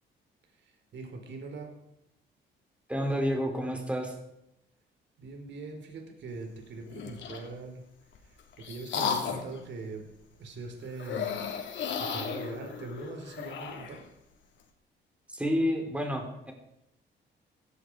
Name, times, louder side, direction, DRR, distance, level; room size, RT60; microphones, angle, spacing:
voice 1, 0.5-1.7 5.2-7.8 8.2-10.1 10.4-11.4 12.0-14.0, right 3 dB, 65° right, 4 dB, 4.4 m, -42 dB
voice 2, 2.9-4.1 15.3-16.5, equal, 5° right, 2 dB, 4.4 m, -29 dB
sound 1, 6.9-7.5 8.1-9.6 11.0-14.0, left 7 dB, 70° left, 3.5 m, -35 dB
17.0 x 15.5 x 5.0 m, 0.84 s
cardioid pair, 90°, 20 cm